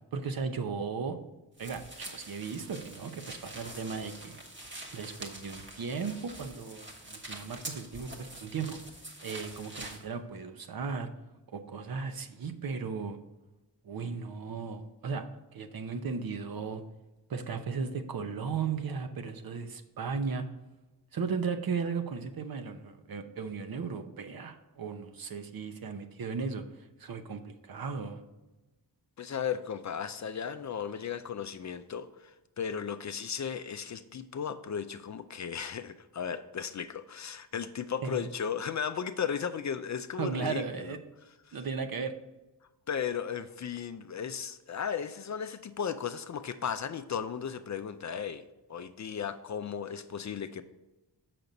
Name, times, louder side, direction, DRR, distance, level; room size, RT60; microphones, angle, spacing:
voice 1, 0.1-1.2 1.6-4.4 4.9-8.8 9.2-11.1 11.5-13.2 13.8-15.3 15.5-16.8 17.3-20.5 21.1-28.2 38.0-38.2 40.2-41.0 41.5-42.1, right 5 dB, 60° right, 8 dB, 0.8 m, -36 dB
sound 1, 1.6-10.0, right 1 dB, 30° right, 1.2 m, -45 dB
voice 2, 29.2-40.9 41.5-41.6 42.9-48.4 48.7-50.6, left 7 dB, 45° left, 10 dB, 0.4 m, -35 dB
6.8 x 5.9 x 3.9 m, 1.1 s
wide cardioid pair, 145°, 41 cm